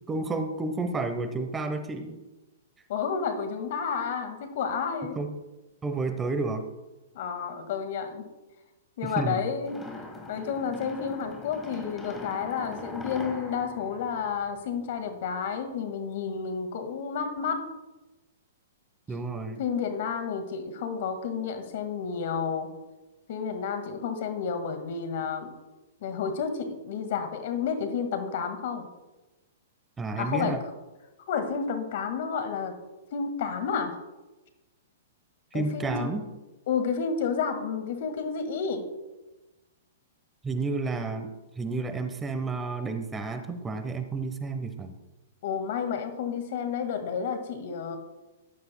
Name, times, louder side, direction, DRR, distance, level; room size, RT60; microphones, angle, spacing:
voice 1, 0.1-2.2 5.2-5.4 5.8-6.7 9.0-9.4 19.1-19.6 30.0-30.6 35.5-36.2 40.4-41.3 41.6-44.9, right 3 dB, 15° right, 8 dB, 0.9 m, -31 dB
voice 2, 2.9-5.2 7.1-8.2 9.0-9.7 10.3-17.6 19.6-22.7 23.3-25.5 26.0-28.9 30.1-30.6 31.3-32.8 33.1-34.0 35.5-36.1 36.7-38.9 45.4-48.0, left 6 dB, 60° left, 7 dB, 1.7 m, -31 dB
sound 1, 9.6-15.0, left 2 dB, 10° left, 1.6 m, -42 dB
15.0 x 11.0 x 2.2 m, 1.1 s
hypercardioid pair, 120°, 0 cm